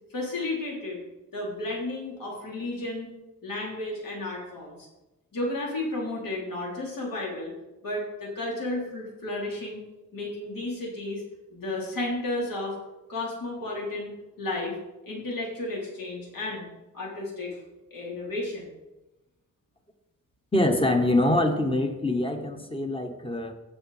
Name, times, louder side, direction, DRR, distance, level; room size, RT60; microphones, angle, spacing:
voice 1, 0.1-1.0 1.3-3.1 3.4-4.9 5.3-7.5 7.8-9.8 10.1-11.2 11.5-12.8 13.1-14.1 14.4-14.8 15.1-16.7 16.9-17.6 17.9-18.7, left 2 dB, 80° left, -3 dB, 3.6 m, -32 dB
voice 2, 20.5-23.5, left 1 dB, 15° left, 6 dB, 1.0 m, -24 dB
15.5 x 6.3 x 4.2 m, 1.0 s
wide cardioid pair, 180°, 33 cm